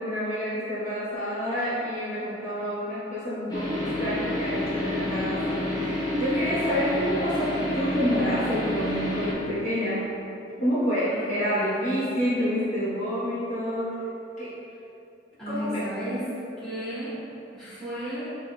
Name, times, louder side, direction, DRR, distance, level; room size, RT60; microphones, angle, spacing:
voice 1, 0.0-10.1 10.6-14.0 14.4-14.6 15.5-15.8, equal, 45° left, -12 dB, 1.2 m, -28 dB
sound 1, 3.5-9.3, left 1 dB, 20° left, 0.8 m, -29 dB
voice 2, 11.1-11.9 15.4-16.2 16.6-17.1 17.5-18.2, equal, 5° left, -13 dB, 1.5 m, -34 dB
6.9 x 2.8 x 2.3 m, 2.8 s
head